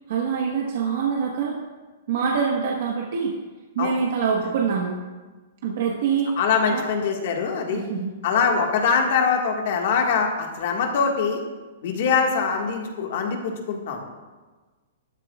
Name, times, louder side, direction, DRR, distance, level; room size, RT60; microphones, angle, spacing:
voice 1, 0.1-1.6 2.1-3.3 3.7-5.0 5.6-6.4 6.7-6.8 7.7-8.1, right 6 dB, 55° right, -2 dB, 1.3 m, -24 dB
voice 2, 6.4-7.8 8.2-11.4 11.8-14.1, left 5 dB, 50° left, 2 dB, 1.7 m, -23 dB
14.5 x 12.5 x 2.4 m, 1.3 s
hypercardioid pair, 170°, 0 cm